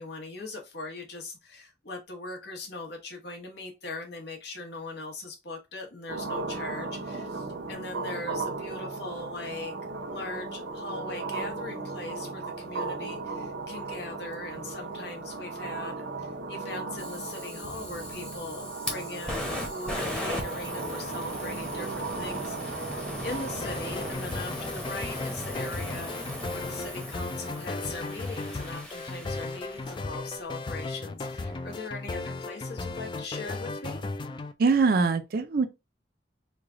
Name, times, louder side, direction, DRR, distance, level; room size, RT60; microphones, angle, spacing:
voice 1, 0.0-9.7 10.1-34.0, left 3 dB, 65° left, 1.1 m, -40 dB
sound 1, 6.1-24.1, right 3 dB, 90° right, 0.7 m, -36 dB
Fire, 17.0-30.1, left 1 dB, 5° left, 0.8 m, -38 dB
sound 2, 23.3-34.5, left 3 dB, 25° left, 0.3 m, -36 dB
voice 2, 34.6-35.7, right 4 dB, 55° right, 0.5 m, -23 dB
3.2 x 2.3 x 3.7 m
head